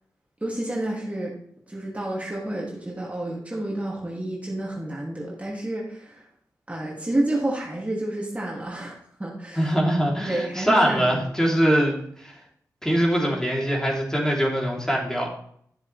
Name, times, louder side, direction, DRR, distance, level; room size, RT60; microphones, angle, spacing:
voice 1, 0.4-1.3 1.7-6.3 6.7-9.7 10.2-11.2, right 1 dB, 20° right, -3 dB, 2.5 m, -30 dB
voice 2, 9.6-12.3 12.8-15.3, equal, 10° left, -2 dB, 3.4 m, -22 dB
10.5 x 7.1 x 3.4 m, 0.65 s
supercardioid pair, 40°, 7 cm